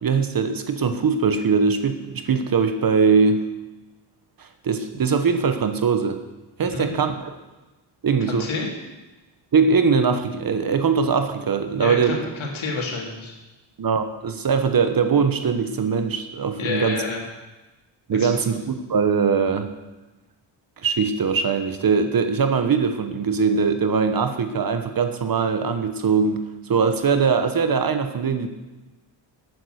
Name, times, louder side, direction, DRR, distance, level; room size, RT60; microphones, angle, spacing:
voice 1, 0.0-3.4 4.4-6.2 6.6-7.3 8.0-8.5 9.5-12.2 13.8-17.0 18.1-19.7 20.8-28.5, right 5 dB, 45° right, 8 dB, 1.1 m, -21 dB
voice 2, 8.3-8.7 11.8-13.3 16.6-17.2 18.1-18.3, left 4 dB, 70° left, 0 dB, 3.2 m, -29 dB
11.0 x 9.4 x 6.5 m, 1.1 s
cardioid pair, 105°, 49 cm